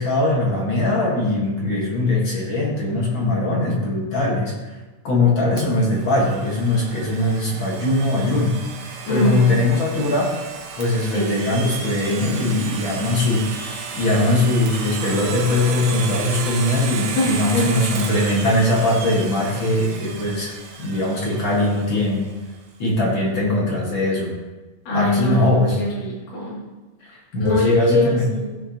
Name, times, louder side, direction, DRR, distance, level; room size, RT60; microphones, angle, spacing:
voice 1, 0.0-4.6 5.0-8.7 9.1-10.3 10.8-13.5 13.9-20.5 20.8-22.3 22.8-24.3 24.9-25.9 27.1-28.4, left 2 dB, 45° left, -3 dB, 2.1 m, -21 dB
Domestic sounds home sounds, 5.6-22.3, right 5 dB, 85° right, 2.7 m, -33 dB
voice 2, 9.0-9.5 11.1-11.3 17.1-17.7 24.9-26.6 27.4-28.7, left 1 dB, 75° left, -6 dB, 4.4 m, -22 dB
16.5 x 6.3 x 3.0 m, 1.2 s
omnidirectional pair, 3.7 m